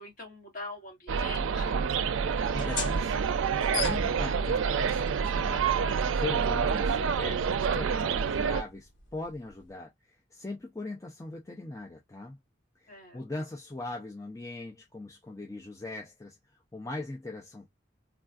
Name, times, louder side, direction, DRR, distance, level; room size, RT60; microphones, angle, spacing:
voice 1, 0.0-1.9 12.9-13.5, left 2 dB, 45° left, 1.7 m, -44 dB
sound 1, 1.1-8.6, right 6 dB, 90° right, 0.4 m, -27 dB
sound 2, 2.4-9.7, left 5 dB, 70° left, 1.2 m, -41 dB
voice 2, 2.5-5.7 6.1-12.4 12.8-16.4 16.7-17.7, left 2 dB, 15° left, 0.5 m, -40 dB
3.4 x 2.4 x 2.3 m
head